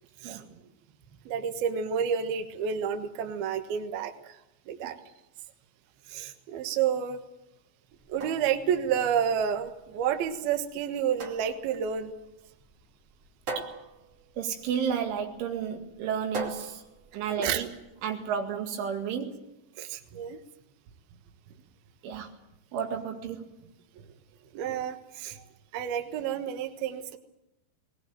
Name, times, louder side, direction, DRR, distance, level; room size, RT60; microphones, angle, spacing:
voice 1, 0.2-0.7 4.8-4.9 13.6-13.7 14.4-16.8 17.1-17.7 18.0-19.5 20.1-20.2 22.0-22.4 22.7-23.6, right 7 dB, 85° right, 4 dB, 4.5 m, -32 dB
voice 2, 1.3-4.3 4.7-5.0 6.1-7.2 8.1-12.1 17.4-17.6 19.8-20.4 24.5-25.4 25.7-27.2, right 8 dB, 65° right, 7 dB, 2.9 m, -30 dB
sound 1, 7.9-17.9, right 3 dB, 40° right, 3.1 m, -42 dB
20.5 x 20.0 x 9.2 m, 0.90 s
omnidirectional pair, 5.4 m